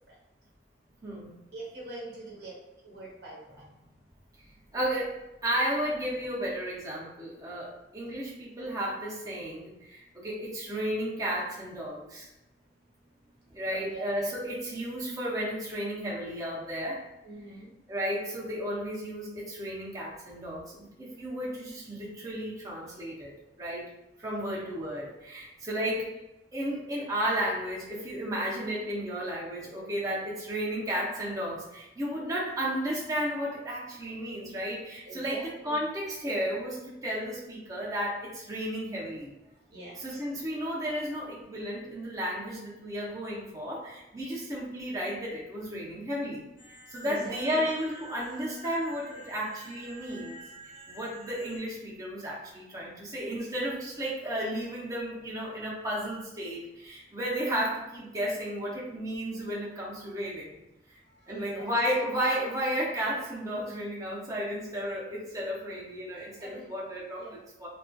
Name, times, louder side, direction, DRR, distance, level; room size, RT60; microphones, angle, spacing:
voice 1, 1.5-2.6 2.8-3.6 13.6-14.0 17.2-17.7 24.3-24.5 25.7-26.0 35.0-35.8 36.2-36.3 37.0-37.2 39.4-40.2 40.6-40.7 41.0-41.1 47.0-47.7 59.6-60.0 61.1-62.0 66.2-66.8 67.1-67.4, right 2 dB, 65° right, -5 dB, 1.0 m, -44 dB
voice 2, 4.7-5.2 5.4-12.3 13.5-17.0 17.9-23.9 24.2-26.1 26.5-39.3 39.9-46.4 46.9-50.4 50.9-60.5 60.9-61.0 61.3-67.7, equal, 20° right, -6 dB, 0.6 m, -33 dB
sound 1, 46.6-51.6, right 1 dB, 50° left, 1.1 m, -49 dB
2.5 x 2.3 x 2.2 m, 0.95 s
head